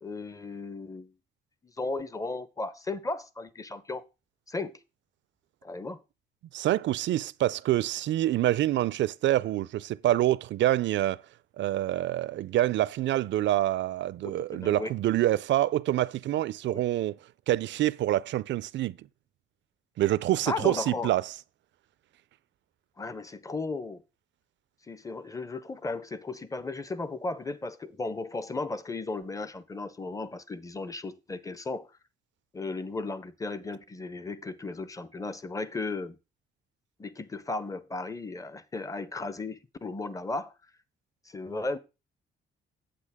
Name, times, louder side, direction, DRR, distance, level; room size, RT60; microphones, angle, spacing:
voice 1, 0.0-1.1 1.6-4.0 4.5-4.8 5.6-6.0 14.2-14.9 16.7-16.8 20.5-21.1 23.0-24.0 24.9-31.9 32.5-36.2 37.0-40.5 41.3-41.8, left 3 dB, 15° left, 0.8 m, -35 dB
voice 2, 6.5-11.2 11.6-17.2 17.5-19.1 20.0-21.2, right 14 dB, 65° right, 0.5 m, -26 dB
8.3 x 8.0 x 3.6 m
cardioid pair, 90°, 20 cm